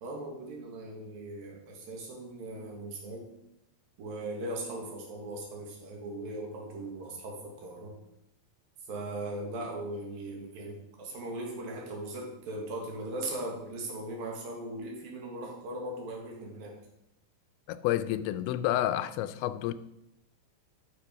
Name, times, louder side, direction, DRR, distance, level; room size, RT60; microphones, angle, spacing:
voice 1, 0.0-3.2 4.0-8.0 8.9-16.7, right 1 dB, 60° right, 3.3 m, -39 dB
voice 2, 17.7-19.7, left 13 dB, 85° left, 2.8 m, -29 dB
10.5 x 6.0 x 5.2 m
omnidirectional pair, 5.2 m